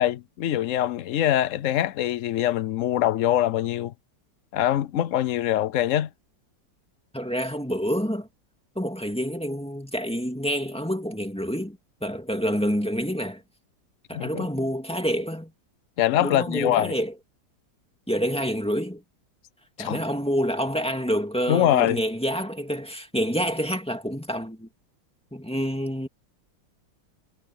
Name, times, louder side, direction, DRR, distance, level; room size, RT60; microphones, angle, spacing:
voice 1, 0.0-3.9 4.5-6.1 14.1-14.5 16.0-16.9 19.8-20.0 21.5-22.0, left 12 dB, 80° left, 0.7 m, -23 dB
voice 2, 7.1-8.3 8.8-13.4 14.1-15.5 16.2-17.1 18.1-19.0 19.8-24.7 25.3-26.1, equal, 5° left, 2.1 m, -27 dB
omnidirectional pair, 2.0 m